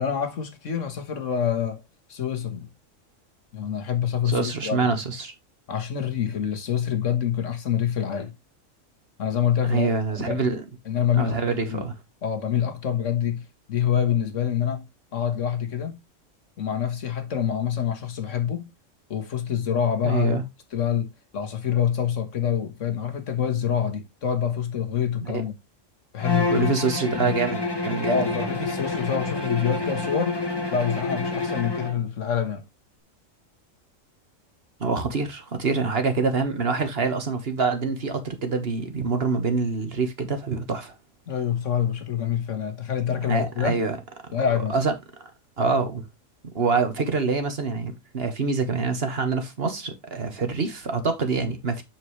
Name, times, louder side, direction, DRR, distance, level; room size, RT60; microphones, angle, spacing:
voice 1, 0.0-1.8 2.1-2.7 3.5-4.9 5.7-8.3 9.2-9.9 10.3-10.4 10.9-11.9 12.2-13.4 13.7-14.8 15.1-16.0 16.6-18.7 19.1-20.4 20.7-25.6 26.1-26.7 27.1-27.4 28.1-30.4 30.7-32.6 41.3-43.7 44.3-44.8, left 8 dB, 70° left, 1.6 m, -26 dB
voice 2, 4.3-5.3 9.6-10.6 11.1-11.9 20.0-20.4 25.2-25.3 26.5-28.4 34.8-40.9 43.2-44.0 44.7-44.9 45.2-45.3 45.6-46.0 46.5-51.8, right 4 dB, 50° right, 1.6 m, -26 dB
Bowed string instrument, 26.2-32.0, left 3 dB, 20° left, 1.0 m, -28 dB
7.5 x 6.2 x 3.1 m
omnidirectional pair, 1.4 m